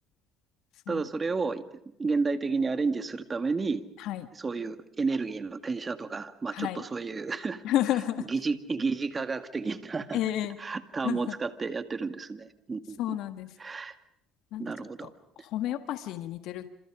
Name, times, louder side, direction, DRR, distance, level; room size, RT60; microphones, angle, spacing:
voice 1, 0.9-1.6 2.0-3.8 4.4-7.6 8.3-10.2 10.6-13.0 13.6-14.0 14.6-15.1, right 4 dB, 25° right, 9 dB, 2.2 m, -31 dB
voice 2, 6.5-6.8 7.6-8.3 10.1-10.6 11.0-11.4 13.0-13.6 14.5-15.1 15.3-16.7, left 12 dB, 70° left, 9 dB, 1.7 m, -31 dB
28.0 x 28.0 x 5.0 m, 0.77 s
supercardioid pair, 100°, 0 cm